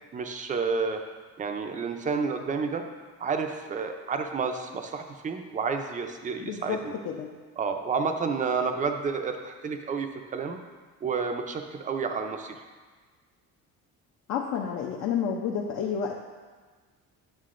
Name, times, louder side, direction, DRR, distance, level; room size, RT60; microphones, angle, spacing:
voice 1, 0.1-1.0 1.4-2.8 3.2-6.9 7.6-10.6 11.0-12.6, right 5 dB, 25° right, 5 dB, 0.4 m, -30 dB
voice 2, 6.4-6.8 7.1-7.3 14.3-16.2, left 7 dB, 55° left, 0 dB, 0.6 m, -30 dB
9.4 x 6.4 x 2.5 m, 1.4 s
cardioid pair, 160°, 32 cm